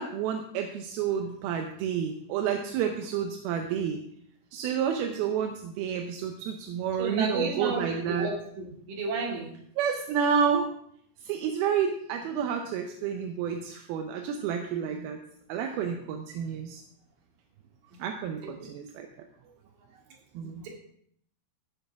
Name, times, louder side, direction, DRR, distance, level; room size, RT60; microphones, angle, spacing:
voice 1, 0.0-4.0 4.5-8.3 9.8-10.7 11.2-15.2 15.5-16.8 18.0-19.1 20.3-20.6, right 7 dB, 85° right, 4 dB, 2.7 m, -30 dB
voice 2, 7.0-9.5 17.9-18.0 20.4-20.7, right 4 dB, 65° right, -1 dB, 4.0 m, -32 dB
14.0 x 9.9 x 3.5 m, 0.67 s
omnidirectional pair, 4.3 m